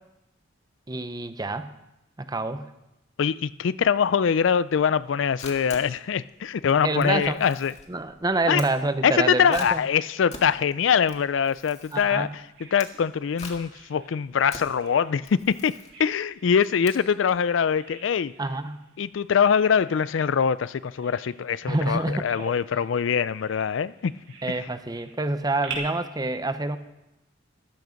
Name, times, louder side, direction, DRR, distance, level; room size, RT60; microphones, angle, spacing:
voice 1, 0.9-1.7 2.2-2.7 6.8-7.4 7.9-9.8 11.9-12.3 18.4-18.9 21.7-22.5 24.4-26.8, right 2 dB, 20° right, 11 dB, 0.7 m, -27 dB
voice 2, 3.2-7.7 8.5-8.7 9.0-15.7 16.0-18.3 19.0-24.1, left 7 dB, 70° left, 17 dB, 0.4 m, -23 dB
Camera, 5.0-17.4, left 4 dB, 35° left, 1.9 m, -45 dB
Bird vocalization bird call bird song, 12.1-25.8, right 7 dB, 65° right, 3.6 m, -48 dB
14.5 x 12.0 x 5.2 m, 0.90 s
head